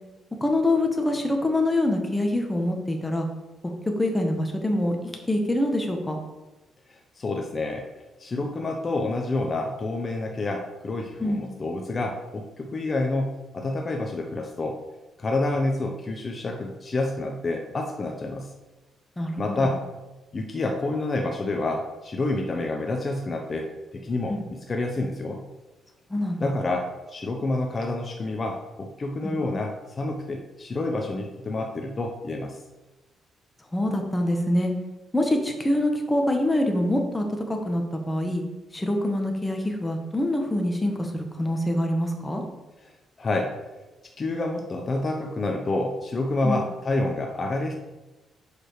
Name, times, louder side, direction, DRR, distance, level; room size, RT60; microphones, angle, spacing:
voice 1, 0.4-3.3 3.6-6.2 11.2-11.5 19.2-19.7 24.3-24.4 26.1-26.5 29.2-29.4 33.7-34.7 35.1-38.4 38.7-42.4 46.4-46.6, left 1 dB, 15° left, 3 dB, 1.3 m, -25 dB
voice 2, 6.9-7.8 8.2-14.8 15.2-18.5 19.4-19.8 20.3-25.4 26.4-32.6 42.8-42.9 43.2-43.5 44.2-47.7, left 2 dB, 35° left, 2 dB, 0.9 m, -28 dB
6.7 x 4.9 x 4.8 m, 1.1 s
cardioid pair, 90°, 0 cm